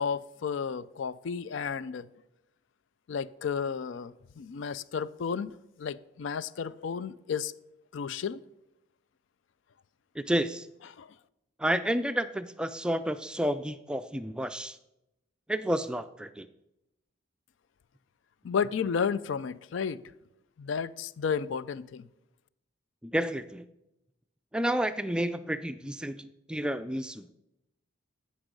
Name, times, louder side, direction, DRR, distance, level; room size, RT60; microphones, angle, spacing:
voice 1, 0.0-2.1 3.1-7.5 7.9-8.4 11.0-11.1 18.4-20.0 20.6-22.1, left 6 dB, 70° left, 0.4 m, -32 dB
voice 2, 10.2-10.7 11.6-14.8 15.5-16.5 23.0-23.6 24.5-27.3, right 1 dB, 5° right, 0.3 m, -30 dB
15.0 x 5.4 x 5.2 m
head